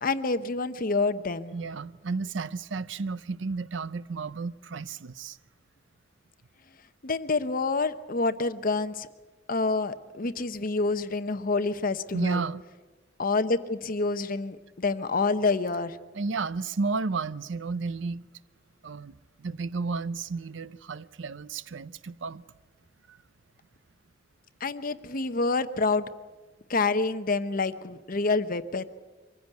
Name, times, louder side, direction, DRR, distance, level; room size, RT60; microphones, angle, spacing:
voice 1, 0.0-1.5 7.0-9.1 9.5-12.4 13.2-16.0 24.6-26.1 26.7-28.8, left 3 dB, 50° left, 0.9 m, -27 dB
voice 2, 1.5-5.4 12.1-12.6 16.2-18.3 18.8-19.1 19.4-22.4 23.1-23.2, right 4 dB, 80° right, 0.6 m, -32 dB
24.0 x 15.5 x 9.3 m
head